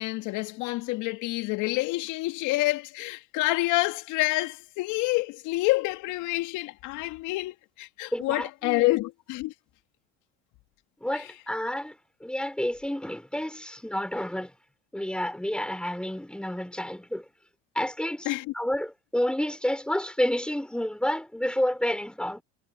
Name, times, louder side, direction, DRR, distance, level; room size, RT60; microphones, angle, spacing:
voice 1, 0.0-9.5 11.1-11.2 18.3-18.4, left 20 dB, 65° left, 2.3 m, -28 dB
voice 2, 8.1-8.9 11.0-14.5 14.9-17.3 17.7-22.4, left 1 dB, 5° left, 4.3 m, -30 dB
hypercardioid pair, 70°, 32 cm